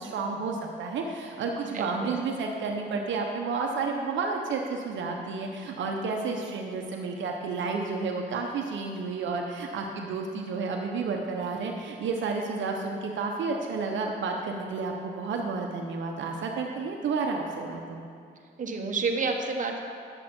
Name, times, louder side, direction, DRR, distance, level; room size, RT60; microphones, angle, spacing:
voice 1, 0.0-18.0, right 4 dB, 70° right, 1 dB, 1.0 m, -31 dB
voice 2, 1.7-2.2 18.6-19.8, right 4 dB, 40° right, 2 dB, 1.2 m, -29 dB
9.9 x 7.8 x 4.4 m, 2.5 s
cardioid pair, 90°, 20 cm